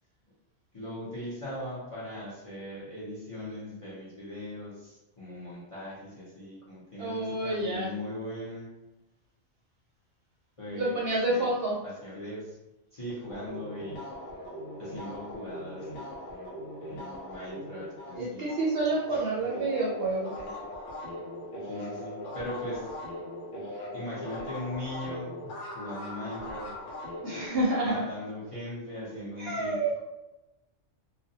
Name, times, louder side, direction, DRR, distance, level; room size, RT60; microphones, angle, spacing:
voice 1, 0.7-8.7 10.6-11.0 11.3-11.5 11.8-12.6 12.9-14.1 14.8-16.6 16.9-18.5 19.1-19.2 21.7-22.9 23.9-25.5 25.7-26.7 27.8-30.0, left 1 dB, 35° left, -8 dB, 0.7 m, -39 dB
voice 2, 7.0-7.9 10.7-11.8 18.1-20.3 27.2-28.0 29.4-29.9, right 2 dB, 60° right, -4 dB, 0.7 m, -28 dB
sound 1, 13.3-19.2 19.5-27.5, left 1 dB, 70° left, 1.0 m, -40 dB
2.4 x 2.1 x 2.7 m, 0.99 s
omnidirectional pair, 1.3 m